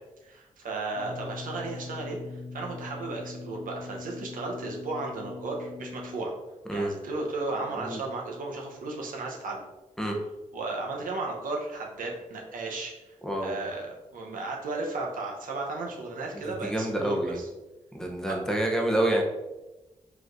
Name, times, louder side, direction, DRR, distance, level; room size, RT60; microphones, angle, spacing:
voice 1, 0.2-6.3 6.7-9.6 10.5-17.5 18.2-18.4, right 3 dB, 80° right, 0 dB, 0.8 m, -34 dB
sound 1, 0.9-6.2, left 4 dB, 75° left, 1.5 m, -41 dB
voice 2, 13.2-13.6 16.3-17.4 17.9-19.2, right 1 dB, 5° left, 1 dB, 0.7 m, -28 dB
4.8 x 3.1 x 2.5 m, 1.0 s
cardioid pair, 70°, 14 cm